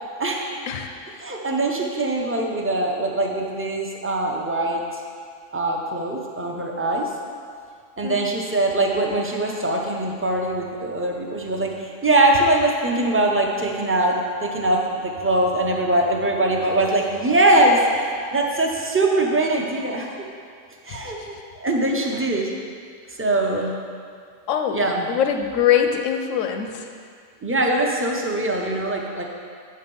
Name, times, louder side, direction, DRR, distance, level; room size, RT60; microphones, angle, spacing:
voice 1, 0.1-0.5 1.2-4.8 5.5-7.1 8.0-20.1 20.9-21.2 21.6-22.5 23.2-23.7 24.7-25.1 27.4-29.2, right 2 dB, 20° right, 0 dB, 0.4 m, -22 dB
voice 2, 0.7-1.1 8.0-8.2 20.9-21.3 24.5-26.9, left 9 dB, 80° left, 5 dB, 1.0 m, -23 dB
8.5 x 4.3 x 5.3 m, 2.1 s
omnidirectional pair, 1.3 m